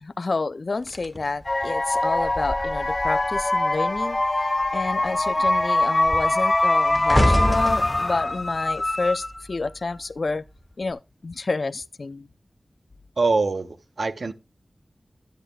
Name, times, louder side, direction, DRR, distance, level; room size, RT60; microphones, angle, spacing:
voice 1, 0.0-4.2 4.7-10.4 10.8-12.3, left 3 dB, 65° left, 0.5 m, -29 dB
sound 1, 0.9-3.6 3.9-4.3 4.6-9.9 10.6-10.9, left 1 dB, 10° left, 1.7 m, -28 dB
sound 2, 1.4-9.5, left 2 dB, 40° left, 1.1 m, -23 dB
voice 2, 13.2-14.3, right 3 dB, 70° right, 1.0 m, -24 dB
10.5 x 9.8 x 2.3 m
cardioid pair, 40°, 0 cm